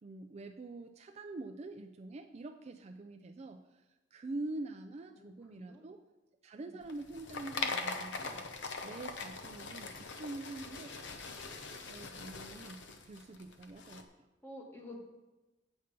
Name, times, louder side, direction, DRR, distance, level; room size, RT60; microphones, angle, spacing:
voice 1, 0.0-3.8 4.1-6.0 6.4-8.4 8.8-11.1 11.4-14.1, right 2 dB, 35° right, 6 dB, 0.4 m, -45 dB
voice 2, 5.1-5.8 6.6-6.8 14.4-15.0, left 1 dB, 10° left, 0 dB, 1.6 m, -50 dB
sound 1, 6.8-14.0, left 4 dB, 65° left, 0.8 m, -42 dB
8.0 x 5.2 x 6.6 m, 1.1 s
head